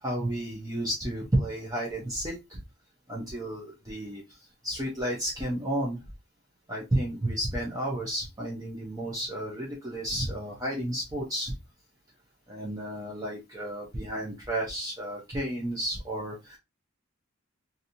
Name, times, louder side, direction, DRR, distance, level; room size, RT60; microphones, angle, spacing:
voice 1, 0.0-2.6 3.1-4.2 4.6-6.0 6.7-11.5 12.5-16.6, right 1 dB, 15° right, -3 dB, 0.6 m, -32 dB
2.9 x 2.6 x 2.6 m, 0.22 s
head